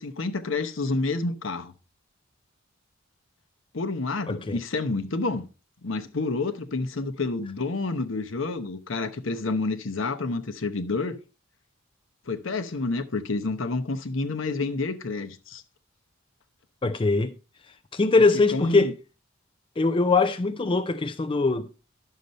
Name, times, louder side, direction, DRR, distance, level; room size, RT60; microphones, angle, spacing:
voice 1, 0.0-1.7 3.7-5.5 5.8-11.2 12.3-15.6 18.5-18.9, left 3 dB, 65° left, 0.9 m, -29 dB
voice 2, 4.3-4.6 16.8-17.3 17.9-18.9 19.8-21.8, left 3 dB, 25° left, 0.4 m, -22 dB
11.0 x 6.6 x 4.1 m
head